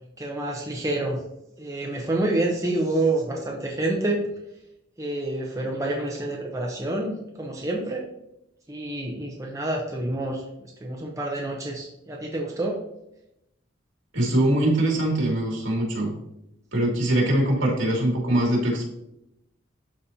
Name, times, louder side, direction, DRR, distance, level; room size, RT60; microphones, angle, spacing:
voice 1, 0.2-1.2 1.6-4.2 5.0-8.0 8.7-12.8, right 2 dB, 15° right, -1 dB, 0.8 m, -28 dB
voice 2, 14.1-16.1 16.7-18.9, right 1 dB, 70° right, -2 dB, 2.6 m, -22 dB
12.5 x 4.2 x 2.8 m, 0.84 s
head